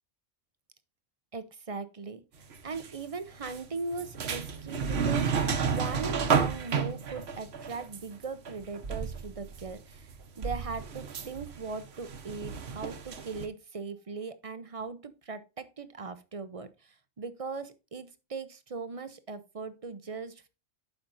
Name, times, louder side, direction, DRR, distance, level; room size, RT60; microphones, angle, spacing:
voice 1, 1.3-2.2 2.6-10.1 10.4-20.5, right 4 dB, 35° right, 12 dB, 0.6 m, -39 dB
sound 1, 2.5-2.9 3.4-9.7 10.0-13.5, right 6 dB, 60° right, 1.1 m, -32 dB
11.5 x 5.4 x 2.6 m, 0.29 s
omnidirectional pair, 1.2 m